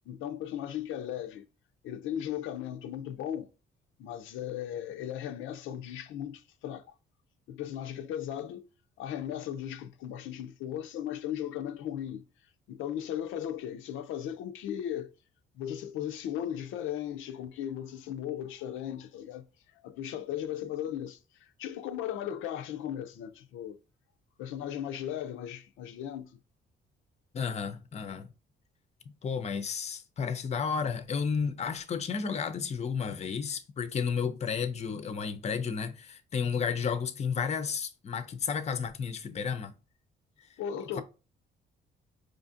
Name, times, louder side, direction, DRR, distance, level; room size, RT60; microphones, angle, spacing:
voice 1, 0.1-1.4 1.8-3.5 4.0-6.9 7.5-8.7 9.0-12.2 12.7-15.1 15.5-19.5 19.7-23.8 24.4-26.4 40.6-41.0, left 10 dB, 85° left, 0.4 m, -37 dB
voice 2, 27.3-28.3 29.2-39.7, left 6 dB, 35° left, 0.5 m, -32 dB
4.9 x 2.5 x 2.5 m
cardioid pair, 90°, 20 cm